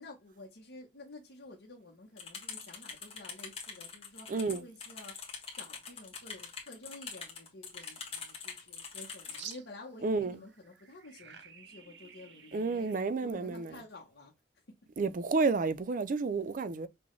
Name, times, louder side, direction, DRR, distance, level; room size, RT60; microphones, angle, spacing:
voice 1, 0.0-5.2 5.5-12.9 13.2-14.3, left 2 dB, 75° left, 0.9 m, -51 dB
sound 1, 2.2-9.5, left 5 dB, 35° left, 1.3 m, -44 dB
voice 2, 4.3-4.7 10.0-10.4 12.5-13.8 15.0-16.9, right 4 dB, 50° right, 0.4 m, -31 dB
sound 2, 7.8-7.9 9.3-10.0 10.3-13.0, right 8 dB, 85° right, 0.7 m, -51 dB
6.0 x 2.2 x 3.1 m
head